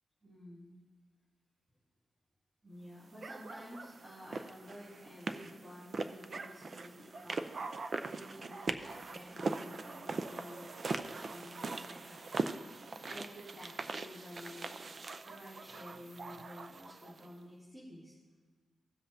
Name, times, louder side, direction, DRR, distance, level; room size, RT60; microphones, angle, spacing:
voice 1, 0.2-0.8 2.6-12.5 12.7-14.8 15.2-18.2, equal, 20° right, -8 dB, 2.6 m, -52 dB
sound 1, 3.2-17.3, right 3 dB, 45° right, 0.5 m, -41 dB
17.0 x 7.5 x 2.7 m, 1.4 s
wide cardioid pair, 110°, 0 cm